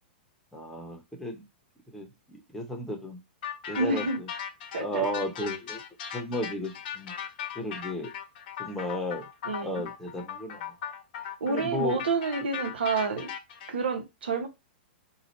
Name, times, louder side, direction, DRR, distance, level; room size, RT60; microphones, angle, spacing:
voice 1, 0.5-1.4 1.9-3.2 3.7-4.3 4.8-5.8 6.1-7.1 7.6-8.1 8.6-9.3 9.6-10.7 11.5-12.0, left 1 dB, 5° left, 0.9 m, -34 dB
sound 1, 3.4-13.7, left 8 dB, 60° left, 0.8 m, -38 dB
voice 2, 3.8-4.2 4.7-5.0 9.5-9.8 11.4-13.3 13.7-14.5, right 4 dB, 90° right, 1.0 m, -29 dB
2.8 x 2.4 x 4.2 m
hypercardioid pair, 130°, 6 cm